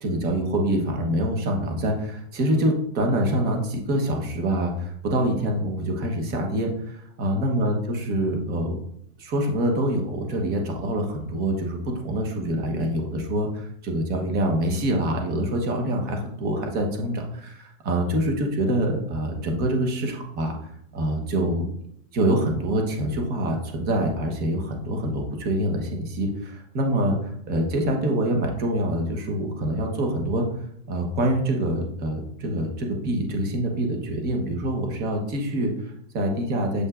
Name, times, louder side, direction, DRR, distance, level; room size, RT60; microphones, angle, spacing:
voice 1, 0.0-8.7 9.2-11.8 12.0-20.5 20.9-21.7 22.1-30.4 30.9-36.9, right 1 dB, 20° right, 2 dB, 1.0 m, -25 dB
7.9 x 5.2 x 2.5 m, 0.70 s
supercardioid pair, 165°, 43 cm